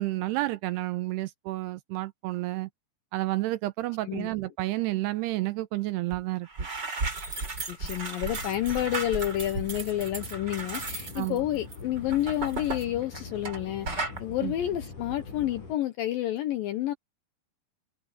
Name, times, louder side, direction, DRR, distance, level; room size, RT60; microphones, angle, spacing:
voice 1, 0.0-2.7 3.1-6.7 11.2-11.4 14.4-14.5, right 18 dB, 80° right, 2.6 m, -30 dB
sound 1, 6.1-6.2 6.5-13.6 13.9-14.2, right 3 dB, 25° right, 3.3 m, -35 dB
voice 2, 7.7-16.9, left 13 dB, 80° left, 2.1 m, -30 dB
sound 2, 8.3-15.8, left 4 dB, 45° left, 7.7 m, -43 dB
omnidirectional pair, 5.1 m